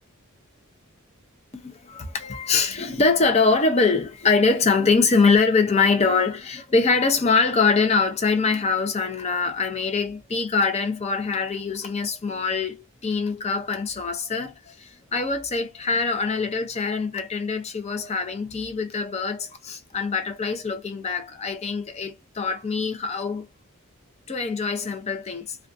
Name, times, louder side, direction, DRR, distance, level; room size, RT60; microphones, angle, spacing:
voice 1, 1.6-23.5 24.3-25.6, left 4 dB, 30° left, 0.5 m, -23 dB
2.4 x 2.2 x 2.5 m
head